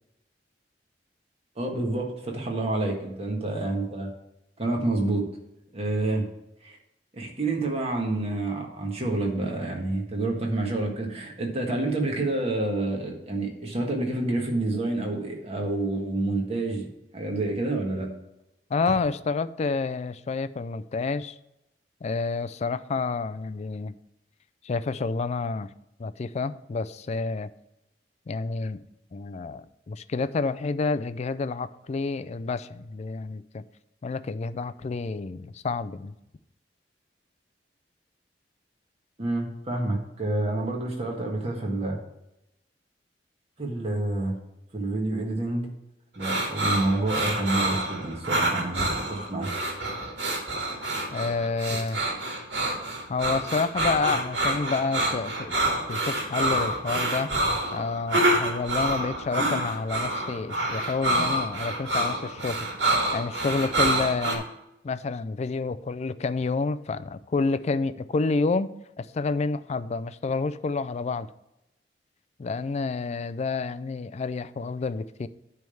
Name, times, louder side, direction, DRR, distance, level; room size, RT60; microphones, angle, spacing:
voice 1, 1.6-4.1 4.6-5.2 5.7-6.2 6.6-6.8 7.1-16.9 17.1-18.1 39.2-42.0 43.6-44.3 44.7-45.7 46.1-49.5, right 2 dB, 35° right, 0 dB, 1.5 m, -28 dB
voice 2, 18.7-21.4 22.0-24.0 24.6-25.7 26.0-27.5 28.3-28.8 29.1-33.6 34.0-36.1 51.1-52.0 53.1-57.3 57.7-62.6 62.8-64.4 64.8-68.7 69.0-71.3 72.4-75.3, left 4 dB, 40° left, 14 dB, 0.3 m, -29 dB
sound 1, 46.2-64.4, right 1 dB, 75° right, 2.0 m, -27 dB
9.3 x 3.5 x 7.0 m, 0.88 s
head